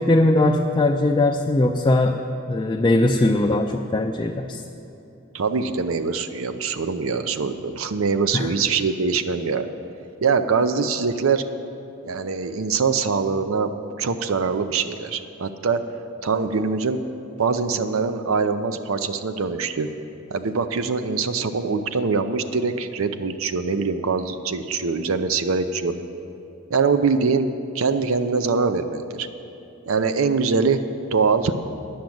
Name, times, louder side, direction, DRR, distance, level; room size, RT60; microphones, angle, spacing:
voice 1, 0.0-2.2 2.5-4.6 8.3-8.5, left 2 dB, 20° left, 2 dB, 0.4 m, -20 dB
voice 2, 5.3-9.7 10.2-11.4 12.0-15.8 16.2-17.0 17.4-19.9 20.3-25.9 26.7-27.4 27.7-29.3 29.9-30.8 31.1-31.5, right 5 dB, 75° right, 9 dB, 0.6 m, -23 dB
10.5 x 7.2 x 7.8 m, 2.9 s
head